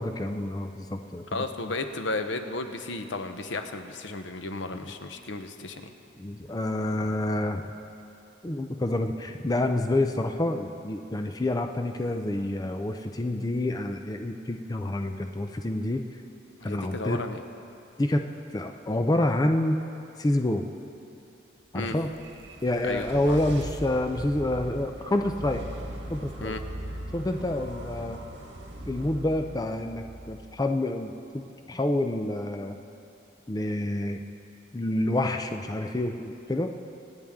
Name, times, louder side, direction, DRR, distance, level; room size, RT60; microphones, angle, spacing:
voice 1, 0.0-1.2 4.8-4.9 6.2-7.7 8.4-16.2 16.6-17.2 18.0-18.2 18.5-19.8 20.2-20.7 21.7-22.1 22.6-25.6 26.1-26.6 27.1-28.2 28.9-32.8 33.5-34.2 34.7-36.7, left 1 dB, 20° left, 5 dB, 0.5 m, -28 dB
voice 2, 1.3-5.9 16.6-17.4 21.7-21.9 22.8-23.4 26.4-26.6, left 2 dB, 80° left, 7 dB, 0.8 m, -34 dB
sound 1, 22.0-31.0, right 1 dB, 85° right, 1.6 m, -40 dB
25.5 x 9.0 x 3.6 m, 2.7 s
head